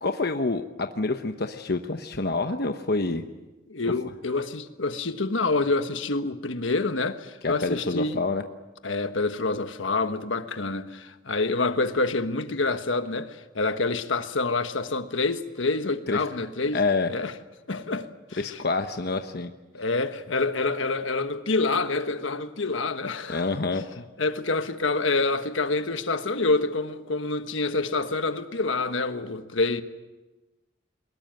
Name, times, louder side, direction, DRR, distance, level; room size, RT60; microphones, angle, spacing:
voice 1, 0.0-3.2 7.4-8.4 16.1-16.2 16.7-17.1 18.4-19.5 23.3-24.0, left 3 dB, 55° left, 1.0 m, -27 dB
voice 2, 3.7-8.2 8.8-16.8 17.1-17.3 17.7-18.6 19.7-23.5 24.2-29.8, left 3 dB, 75° left, 1.4 m, -27 dB
23.0 x 21.0 x 9.2 m
head